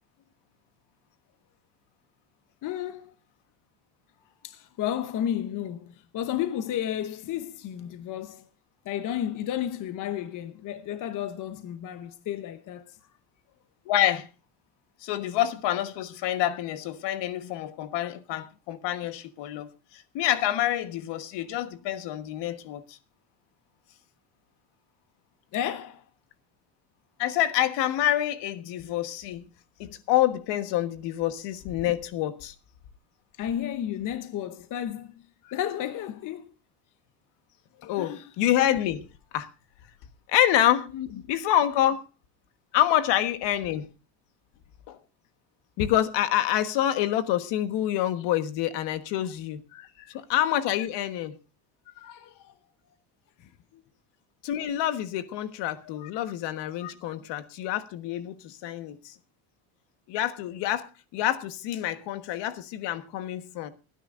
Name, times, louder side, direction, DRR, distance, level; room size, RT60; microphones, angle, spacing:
voice 1, 2.6-3.1 4.4-8.5 8.8-13.0 25.5-26.0 33.4-36.4 37.7-38.3 40.9-41.2 49.7-50.2 52.0-52.5 53.4-53.8 56.0-56.1, left 10 dB, 45° left, 0.9 m, -33 dB
voice 2, 13.9-14.3 15.0-23.0 27.2-29.4 29.8-32.5 37.9-39.1 39.3-39.5 40.3-40.9 41.3-42.0 42.7-43.9 44.9-45.0 45.8-49.6 50.1-51.4 54.4-59.1 60.1-63.7, left 12 dB, 65° left, 1.4 m, -27 dB
28.5 x 10.0 x 2.5 m
cardioid pair, 155°, 44 cm